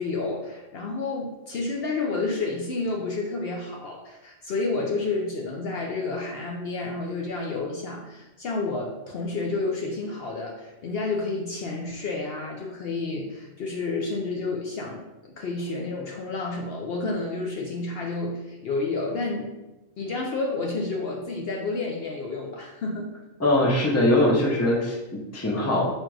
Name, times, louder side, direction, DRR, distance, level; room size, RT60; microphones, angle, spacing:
voice 1, 0.0-19.5 20.0-23.1, left 3 dB, 60° left, -1 dB, 0.7 m, -30 dB
voice 2, 23.4-25.8, left 1 dB, 15° left, -2 dB, 0.5 m, -22 dB
4.4 x 2.5 x 4.5 m, 1.0 s
omnidirectional pair, 1.4 m